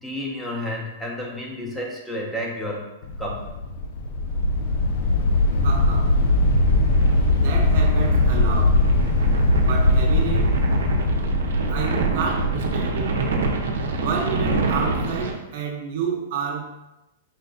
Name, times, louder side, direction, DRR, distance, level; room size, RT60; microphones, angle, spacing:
voice 1, 0.0-2.9 3.2-3.5, left 1 dB, 5° left, -2 dB, 0.8 m, -31 dB
sound 1, 3.0-13.0, left 2 dB, 60° left, 0.4 m, -20 dB
sound 2, 5.3-15.3, right 3 dB, 85° right, 0.7 m, -27 dB
voice 2, 5.6-6.1 7.3-8.8 9.6-10.6 11.7-13.2 14.0-16.7, right 6 dB, 60° right, 0 dB, 0.9 m, -29 dB
4.5 x 2.2 x 3.8 m, 0.94 s
hypercardioid pair, 130°, 0 cm